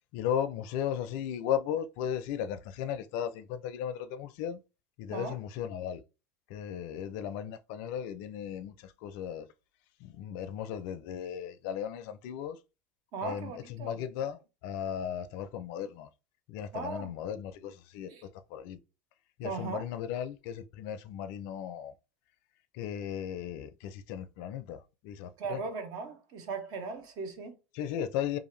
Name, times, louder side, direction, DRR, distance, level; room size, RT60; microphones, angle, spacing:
voice 1, 0.1-4.6 5.0-6.0 6.5-9.5 10.0-12.6 13.2-16.1 16.5-18.8 19.4-21.9 22.7-25.6 27.7-28.4, left 9 dB, 65° left, 0.4 m, -36 dB
voice 2, 13.1-14.0 16.7-17.1 18.1-18.2 19.4-19.8 25.4-27.6, right 4 dB, 55° right, 0.8 m, -38 dB
2.7 x 2.4 x 3.1 m
supercardioid pair, 100°, 8 cm